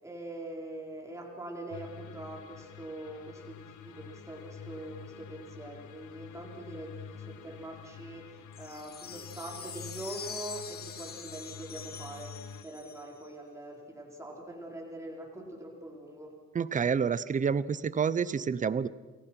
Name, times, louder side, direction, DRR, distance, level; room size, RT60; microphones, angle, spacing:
voice 1, 0.0-12.3 12.6-16.3, right 1 dB, 10° right, 0 dB, 4.7 m, -43 dB
sound 1, 1.7-12.6, left 7 dB, 85° left, 1.7 m, -48 dB
sound 2, 8.5-13.3, left 7 dB, 30° left, 1.6 m, -44 dB
voice 2, 16.5-18.9, right 6 dB, 25° right, 17 dB, 0.8 m, -28 dB
29.5 x 22.0 x 6.0 m, 1.3 s
cardioid pair, 170°, 30 cm